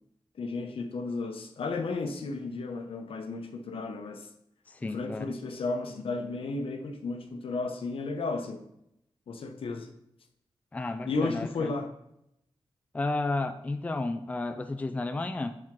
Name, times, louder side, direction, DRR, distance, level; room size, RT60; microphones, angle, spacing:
voice 1, 0.4-4.3 4.8-8.6 9.3-9.9 11.1-11.9, left 3 dB, 80° left, 6 dB, 0.8 m, -33 dB
voice 2, 4.7-5.3 10.7-11.7 12.9-15.5, left 2 dB, 15° left, 8 dB, 0.3 m, -32 dB
7.5 x 4.4 x 3.7 m, 0.80 s
wide cardioid pair, 140°, 9 cm